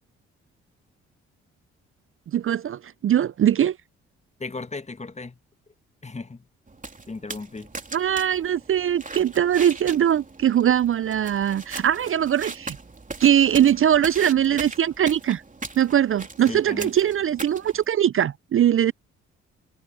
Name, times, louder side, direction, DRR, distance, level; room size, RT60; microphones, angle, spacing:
voice 1, 2.3-3.8 7.9-12.8 13.2-15.4 15.8-18.9, right 10 dB, 45° right, 0.6 m, -21 dB
voice 2, 4.4-5.4 6.0-6.5 7.1-7.7 16.5-16.9, left 3 dB, 20° left, 1.6 m, -35 dB
sound 1, 6.7-17.9, right 3 dB, 25° right, 3.5 m, -39 dB
hypercardioid pair, 45°, 31 cm